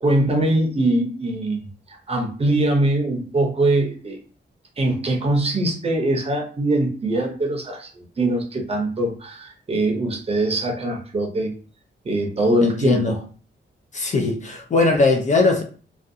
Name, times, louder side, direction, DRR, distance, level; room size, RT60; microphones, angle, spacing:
voice 1, 0.0-4.2 4.8-11.5 12.0-13.2, right 1 dB, 30° right, 1 dB, 0.6 m, -22 dB
voice 2, 12.6-13.2 13.9-15.6, left 3 dB, 40° left, 3 dB, 0.4 m, -20 dB
2.6 x 2.3 x 2.6 m, 0.40 s
wide cardioid pair, 175°, 20 cm